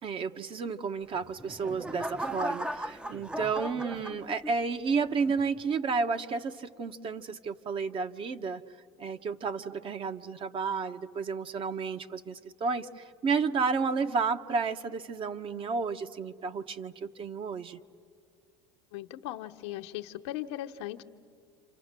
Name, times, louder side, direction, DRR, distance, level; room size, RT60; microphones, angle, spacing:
voice 1, 0.0-8.6 9.0-17.8, right 5 dB, 40° right, 8 dB, 1.2 m, -32 dB
sound 1, 1.1-4.7 5.3-5.6, right 1 dB, 5° right, 0.7 m, -37 dB
voice 2, 18.9-21.0, left 14 dB, 80° left, 6 dB, 1.2 m, -38 dB
29.0 x 27.0 x 7.6 m, 2.2 s
supercardioid pair, 95°, 14 cm